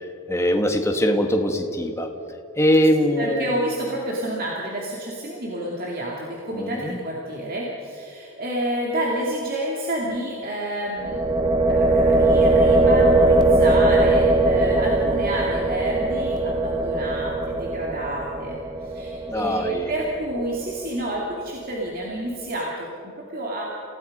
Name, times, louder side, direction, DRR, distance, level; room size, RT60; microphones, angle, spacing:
voice 1, 0.3-2.1 2.5-3.6 6.5-7.0 19.3-19.9, equal, 10° left, 4 dB, 1.6 m, -22 dB
voice 2, 3.2-23.6, right 1 dB, 40° right, -3 dB, 2.5 m, -29 dB
sound 1, 11.0-20.8, right 2 dB, 20° right, 1.1 m, -20 dB
29.0 x 16.5 x 5.4 m, 2.9 s
head